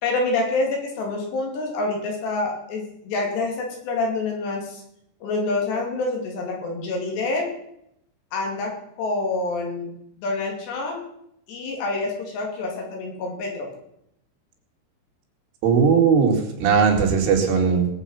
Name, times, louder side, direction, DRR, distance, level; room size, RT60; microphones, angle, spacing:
voice 1, 0.0-4.8 5.2-7.5 8.3-9.9 10.2-11.0 11.5-13.7, left 3 dB, 65° left, 1 dB, 4.6 m, -27 dB
voice 2, 15.6-17.9, right 6 dB, 90° right, 1 dB, 4.8 m, -18 dB
20.5 x 7.9 x 5.6 m, 0.77 s
omnidirectional pair, 5.5 m